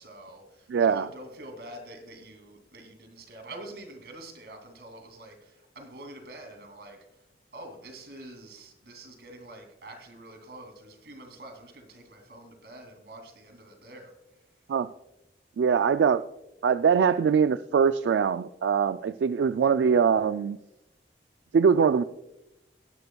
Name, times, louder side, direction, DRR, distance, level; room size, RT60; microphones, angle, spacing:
voice 1, 0.0-7.3 7.5-14.5 15.8-15.9, right 1 dB, 70° right, 4 dB, 2.7 m, -46 dB
voice 2, 0.7-1.1 14.7-14.9 15.6-16.2 16.6-20.6 21.5-22.0, right 6 dB, 85° right, 12 dB, 0.3 m, -22 dB
18.0 x 11.0 x 2.3 m, 0.91 s
head